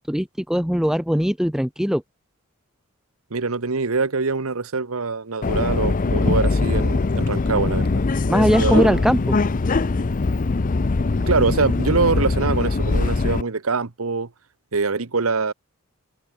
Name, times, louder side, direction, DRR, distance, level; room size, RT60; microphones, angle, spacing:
voice 1, 0.0-2.0 8.3-9.4, equal, ahead, 0.8 m, -20 dB
voice 2, 3.3-8.0 8.6-9.0 11.3-14.3 14.7-15.5, right 4 dB, 85° right, 1.1 m, -24 dB
Subway metro underground, 5.4-13.4, left 3 dB, 40° left, 0.5 m, -21 dB
head